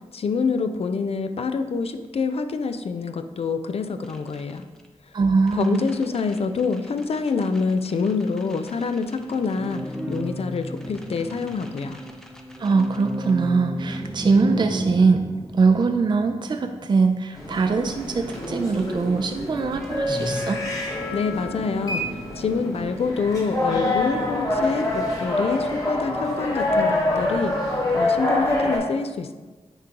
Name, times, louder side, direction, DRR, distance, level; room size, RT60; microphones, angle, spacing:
voice 1, 0.1-4.6 5.5-9.8 10.1-12.0 21.1-22.0 22.4-29.3, left 4 dB, 60° left, 8 dB, 0.4 m, -26 dB
sound 1, 4.0-4.9 5.5-17.7 18.3-18.8 19.5-20.5, right 1 dB, 5° left, 0.6 m, -35 dB
voice 2, 5.1-5.8 12.6-15.2 15.6-20.6, right 4 dB, 40° right, 6 dB, 0.4 m, -22 dB
sound 2, 17.4-28.8, left 1 dB, 30° left, 1.6 m, -26 dB
9.7 x 3.7 x 2.9 m, 1.3 s
wide cardioid pair, 85°, 12 cm